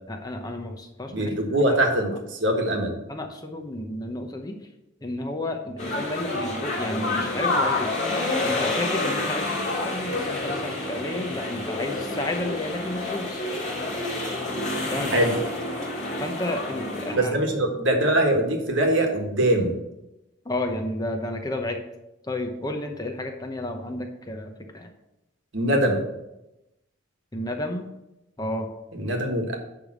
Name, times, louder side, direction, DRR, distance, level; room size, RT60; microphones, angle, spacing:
voice 1, 0.1-1.6 2.1-2.2 3.1-4.6 5.0-7.9 8.4-13.5 14.9-15.4 16.2-17.5 20.4-21.8 22.3-24.9 27.3-27.9 28.4-28.7, left 1 dB, 20° left, 3 dB, 0.9 m, -32 dB
voice 2, 1.1-3.0 15.1-15.3 17.1-19.7 25.5-26.0 28.9-29.6, right 1 dB, 65° right, 3 dB, 1.5 m, -22 dB
sound 1, 5.8-17.1, left 2 dB, 35° left, 2.1 m, -28 dB
10.5 x 3.5 x 6.1 m, 0.92 s
head